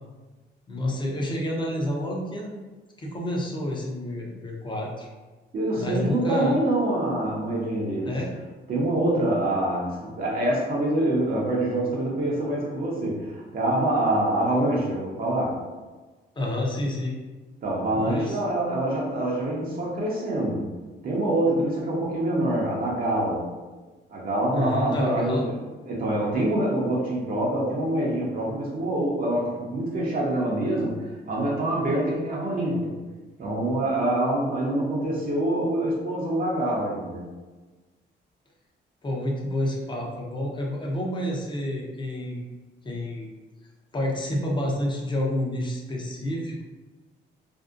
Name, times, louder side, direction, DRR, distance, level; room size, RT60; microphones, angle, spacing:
voice 1, 0.7-2.5 3.0-5.1 5.7-6.6 8.1-8.3 16.4-17.1 18.0-18.4 24.5-25.5 39.0-42.4 42.8-43.3 43.9-46.6, left 1 dB, 25° left, -2 dB, 0.6 m, -29 dB
voice 2, 5.5-8.2 8.7-15.6 17.6-20.7 21.0-23.4 24.1-32.9 33.4-37.3, right 1 dB, 50° right, -4 dB, 0.6 m, -25 dB
2.6 x 2.0 x 2.4 m, 1.3 s
cardioid pair, 90°, 20 cm